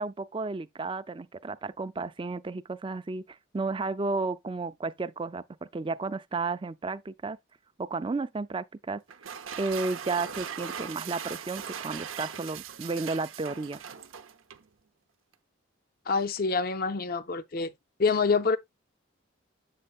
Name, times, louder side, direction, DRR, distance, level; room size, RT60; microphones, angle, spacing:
voice 1, 0.0-7.4 7.8-9.0 9.3-13.8, right 3 dB, 25° right, 0.4 m, -33 dB
sound 1, 9.1-14.7, right 8 dB, 90° right, 0.7 m, -39 dB
voice 2, 16.1-17.7 18.0-18.6, left 4 dB, 50° left, 0.5 m, -26 dB
8.5 x 6.5 x 2.4 m
head